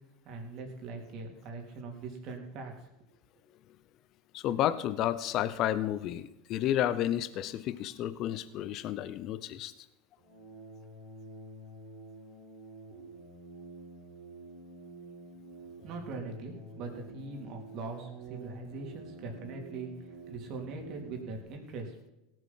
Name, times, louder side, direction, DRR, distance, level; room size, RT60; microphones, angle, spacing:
voice 1, 0.2-2.9 15.8-22.0, right 3 dB, 55° right, 2 dB, 3.4 m, -41 dB
voice 2, 4.3-9.7, left 12 dB, 50° left, 14 dB, 0.8 m, -31 dB
sound 1, 10.2-21.5, right 2 dB, 75° right, 4.5 m, -48 dB
17.0 x 8.0 x 5.7 m, 0.97 s
hypercardioid pair, 95°, 0 cm